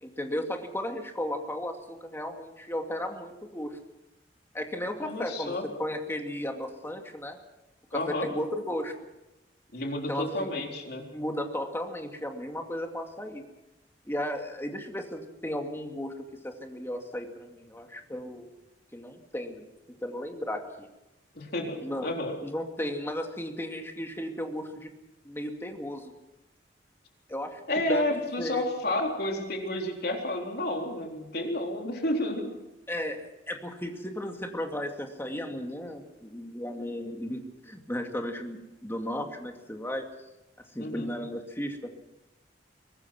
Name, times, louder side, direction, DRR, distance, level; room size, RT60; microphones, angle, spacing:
voice 1, 0.0-3.8 4.5-7.4 7.9-8.9 10.1-10.6 11.1-13.4 14.1-18.5 18.9-19.7 20.0-20.9 21.8-22.1 22.4-24.9 25.2-26.1 27.3-28.1 28.4-28.7 32.9-40.0 40.7-41.8, left 1 dB, 15° left, 3 dB, 2.4 m, -35 dB
voice 2, 5.0-5.6 7.9-8.3 9.7-11.1 21.3-22.3 27.7-32.5 40.8-41.1, left 1 dB, 60° left, 2 dB, 3.8 m, -31 dB
23.5 x 19.0 x 6.1 m, 0.97 s
head